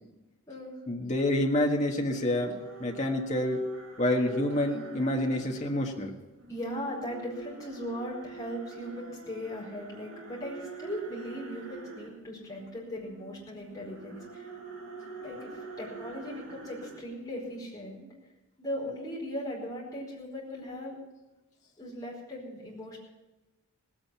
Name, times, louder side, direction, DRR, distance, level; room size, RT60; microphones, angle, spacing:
voice 1, 0.9-3.6 4.0-6.1, left 1 dB, 30° left, 1 dB, 1.6 m, -28 dB
sound 1, 1.7-5.8 6.4-17.5, right 3 dB, 65° right, 5.3 m, -46 dB
voice 2, 6.5-14.5 15.2-18.1 18.6-21.0 21.8-23.0, equal, 15° left, -5 dB, 4.9 m, -38 dB
18.0 x 8.9 x 7.1 m, 1.1 s
head